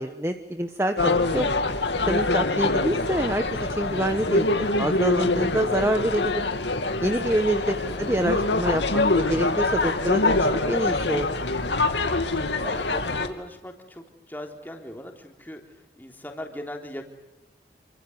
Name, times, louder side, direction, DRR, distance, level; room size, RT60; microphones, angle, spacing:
voice 1, 0.0-1.5 2.1-6.5 7.0-11.3, right 1 dB, 15° right, 7 dB, 1.2 m, -26 dB
sound 1, 1.0-13.3, left 2 dB, 85° left, 2.6 m, -24 dB
voice 2, 7.8-8.3 12.6-17.1, equal, 10° left, 3 dB, 3.6 m, -40 dB
28.5 x 25.0 x 8.0 m, 0.94 s
head